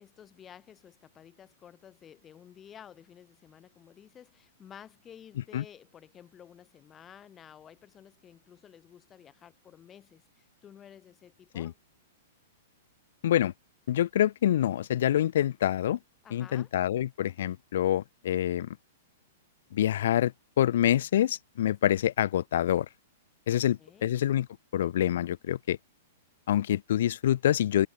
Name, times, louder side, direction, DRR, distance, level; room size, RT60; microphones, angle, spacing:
voice 1, 0.0-11.8 16.2-16.7 23.5-24.1, left 9 dB, 25° left, 3.1 m, -53 dB
voice 2, 13.9-16.0 16.3-18.8 19.7-20.3 20.6-22.9 23.5-24.5 24.7-25.8 26.5-27.9, left 11 dB, 65° left, 0.4 m, -26 dB
hypercardioid pair, 110°, 0 cm